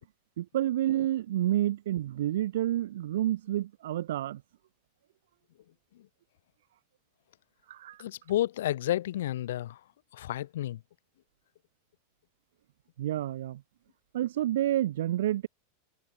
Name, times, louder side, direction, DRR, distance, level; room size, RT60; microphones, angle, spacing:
voice 1, 0.4-4.4 7.7-8.0 13.0-13.6 14.1-15.5, right 13 dB, 75° right, 1.4 m, -29 dB
voice 2, 8.0-9.8 10.1-10.8, left 13 dB, 75° left, 1.8 m, -31 dB
supercardioid pair, 180°, 0 cm